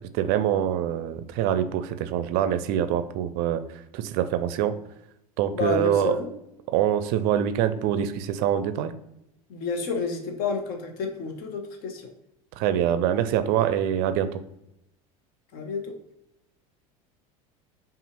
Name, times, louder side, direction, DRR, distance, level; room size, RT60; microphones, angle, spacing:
voice 1, 0.1-3.6 3.9-4.8 5.4-6.2 6.7-8.9 12.6-14.4, right 10 dB, 55° right, 11 dB, 0.4 m, -24 dB
voice 2, 5.5-6.3 9.5-12.1 15.5-15.9, left 4 dB, 55° left, 4 dB, 0.9 m, -30 dB
5.3 x 2.4 x 3.0 m, 0.83 s
hypercardioid pair, 80°, 18 cm